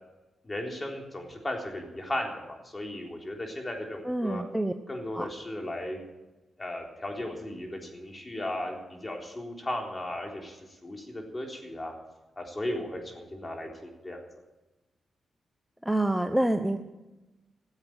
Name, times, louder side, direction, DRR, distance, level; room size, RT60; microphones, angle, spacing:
voice 1, 0.4-4.4 4.9-6.0 6.6-11.9 12.4-14.2, left 1 dB, 25° left, 1 dB, 3.8 m, -36 dB
voice 2, 4.1-4.7 5.2-5.3 15.9-16.8, right 1 dB, 5° right, 7 dB, 0.9 m, -27 dB
15.0 x 7.7 x 9.0 m, 1.1 s
cardioid pair, 60°, 0 cm